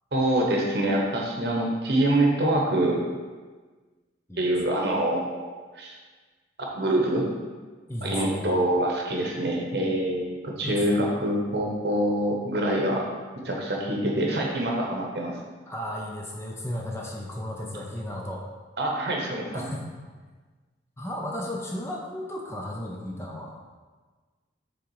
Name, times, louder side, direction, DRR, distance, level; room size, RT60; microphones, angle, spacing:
voice 1, 0.1-3.0 4.4-5.5 5.8-6.0 6.6-7.3 8.0-13.0 13.4-15.4 18.8-19.7, right 1 dB, 60° right, 0 dB, 1.1 m, -25 dB
voice 2, 4.3-4.9 7.9-8.6 10.6-10.8 15.7-18.4 19.5-19.9 21.0-23.6, left 1 dB, 15° left, -1 dB, 0.7 m, -34 dB
6.7 x 3.8 x 4.8 m, 1.4 s
head